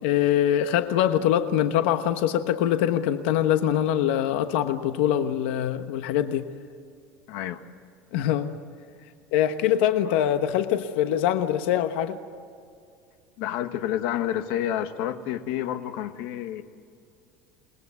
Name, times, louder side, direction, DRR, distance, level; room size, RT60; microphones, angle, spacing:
voice 1, 0.0-6.5 8.1-8.5 9.3-12.2, left 11 dB, 85° left, 8 dB, 1.2 m, -23 dB
voice 2, 7.3-7.6 10.0-10.2 13.4-16.6, left 11 dB, 60° left, 8 dB, 1.4 m, -29 dB
28.0 x 20.5 x 8.3 m, 2.3 s
cardioid pair, 180°, 6 cm